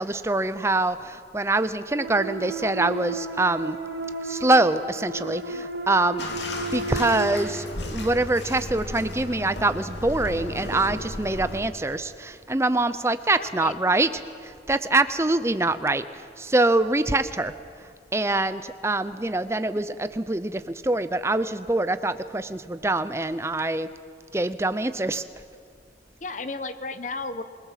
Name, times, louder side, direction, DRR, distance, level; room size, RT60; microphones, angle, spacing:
voice 1, 0.0-3.8 4.2-6.2 6.7-17.5 18.1-23.9 24.3-25.2, right 2 dB, 15° right, 12 dB, 0.6 m, -24 dB
sound 1, 2.0-7.3, right 3 dB, 70° right, 1.8 m, -33 dB
Bathtub (filling or washing), 6.2-11.6, left 1 dB, 75° left, 2.9 m, -34 dB
voice 2, 13.4-13.8 26.2-27.4, left 3 dB, 40° left, 11 dB, 1.0 m, -34 dB
27.0 x 19.0 x 7.5 m, 2.3 s
head